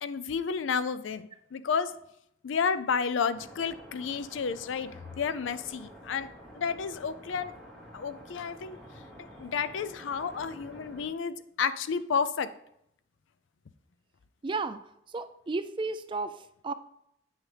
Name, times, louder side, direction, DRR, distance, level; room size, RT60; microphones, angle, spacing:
voice 1, 0.0-1.9 2.4-6.3 6.5-7.5 7.9-8.8 9.4-12.5, left 6 dB, 90° left, 13 dB, 0.4 m, -31 dB
sound 1, 3.3-11.1, equal, ahead, 2.3 m, -49 dB
voice 2, 14.4-14.8 15.1-16.7, right 3 dB, 25° right, 12 dB, 0.3 m, -33 dB
8.9 x 6.2 x 3.3 m, 0.78 s
head